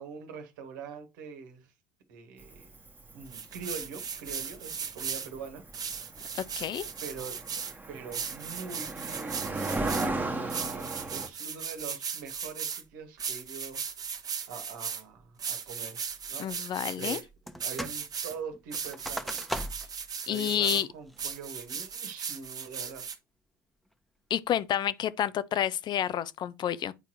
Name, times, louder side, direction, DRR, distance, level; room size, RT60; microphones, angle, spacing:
voice 1, 0.0-1.7 2.1-2.7 3.1-5.6 7.0-7.4 7.9-13.8 14.5-16.0 16.3-16.6 17.0-17.3 17.6-19.5 20.3-23.1, right 5 dB, 75° right, 1.7 m, -43 dB
Cricket, 2.4-11.3, right 2 dB, 15° right, 1.3 m, -36 dB
sound 1, 3.3-5.3 5.7-7.7 8.1-10.1 10.5-12.8 13.2-15.0 15.4-17.2 17.6-18.3 18.7-20.8 21.2-23.1, right 6 dB, 35° right, 1.3 m, -37 dB
voice 2, 6.3-6.9 16.4-17.2 20.3-20.9 24.3-26.9, left 10 dB, 45° left, 0.6 m, -29 dB
sound 2, 17.5-18.0 18.3-20.0 20.5-20.6 21.1-21.5 22.0-22.4, equal, ahead, 1.1 m, -38 dB
9.1 x 4.5 x 3.1 m
hypercardioid pair, 70°, 10 cm